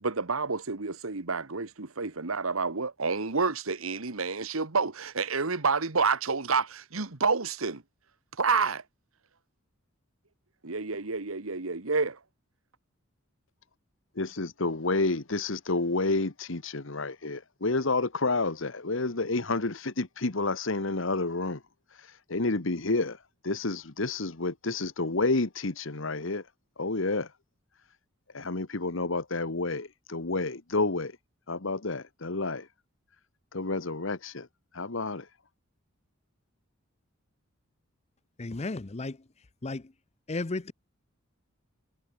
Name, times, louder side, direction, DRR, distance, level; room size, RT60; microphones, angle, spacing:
voice 1, 0.0-7.8 8.4-8.8 10.6-12.2, right 4 dB, 80° right, 1.6 m, -29 dB
voice 2, 14.1-21.6 22.3-23.2 23.4-26.4 26.8-27.3 28.3-31.1 31.5-32.7 33.5-34.5 34.7-35.3, left 3 dB, 65° left, 1.4 m, -29 dB
voice 3, 38.4-39.2 39.6-39.9 40.3-40.7, left 2 dB, 30° left, 0.7 m, -33 dB
head